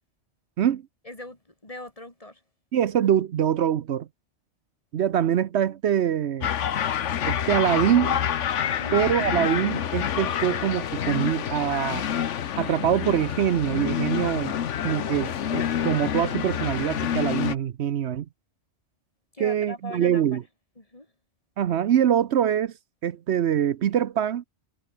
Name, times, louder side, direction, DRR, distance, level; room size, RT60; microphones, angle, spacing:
voice 1, 1.0-2.4 8.7-8.9 19.3-20.4 20.8-21.1, left 1 dB, 30° left, 3.5 m, -41 dB
voice 2, 2.7-4.1 4.9-6.5 7.2-8.2 8.9-12.0 12.5-14.5 14.8-18.3 19.4-20.4 21.6-22.7 23.0-24.4, right 9 dB, 70° right, 1.0 m, -24 dB
sound 1, 6.4-17.5, left 9 dB, 90° left, 1.3 m, -27 dB
omnidirectional pair, 1.2 m